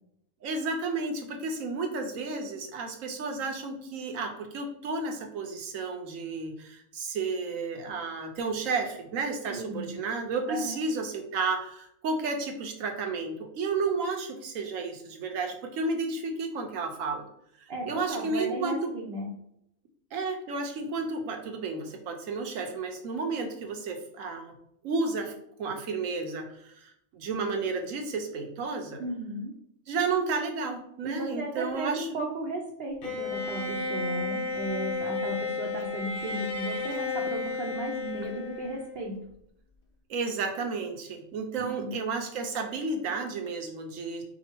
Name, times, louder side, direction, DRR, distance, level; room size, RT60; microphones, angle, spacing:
voice 1, 0.4-17.3 17.6-18.9 20.1-24.5 24.8-25.3 25.6-29.0 29.9-32.2 40.1-44.2, right 4 dB, 75° right, 3 dB, 1.2 m, -32 dB
voice 2, 9.5-9.9 10.5-10.8 17.7-19.3 29.0-29.5 31.0-39.2 41.6-42.0, right 1 dB, 55° right, -1 dB, 0.8 m, -35 dB
Bowed string instrument, 33.0-39.1, left 3 dB, 80° left, 1.4 m, -33 dB
5.0 x 2.4 x 4.4 m, 0.74 s
omnidirectional pair, 1.4 m